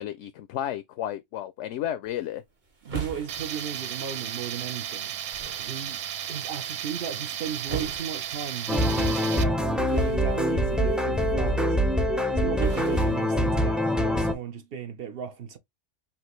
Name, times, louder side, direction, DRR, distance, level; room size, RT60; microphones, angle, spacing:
voice 1, 0.0-2.4, left 11 dB, 75° left, 0.9 m, -32 dB
sound 1, 2.0-14.1, right 6 dB, 40° right, 1.3 m, -43 dB
voice 2, 2.8-5.1 5.6-11.8 12.1-15.6, right 8 dB, 55° right, 0.9 m, -36 dB
Tools, 3.3-9.4, right 10 dB, 90° right, 1.0 m, -34 dB
sound 2, 8.7-14.3, equal, ahead, 0.4 m, -24 dB
5.8 x 2.5 x 3.1 m
omnidirectional pair, 1.3 m